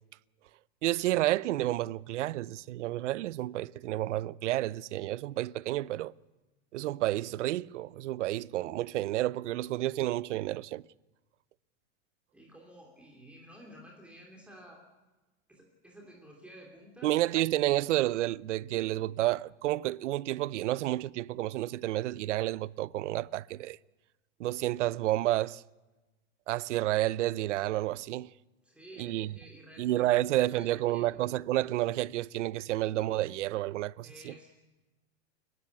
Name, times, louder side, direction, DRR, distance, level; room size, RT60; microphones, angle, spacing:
voice 1, 0.8-6.1 6.7-10.8 17.0-23.8 24.4-25.6 26.5-28.3 29.0-29.3 29.8-34.3, right 15 dB, 80° right, 0.7 m, -30 dB
voice 2, 12.3-14.8 15.5-17.5 28.6-31.1 34.0-34.5, equal, 5° right, 3.2 m, -52 dB
29.0 x 12.0 x 9.6 m
supercardioid pair, 160°, 35 cm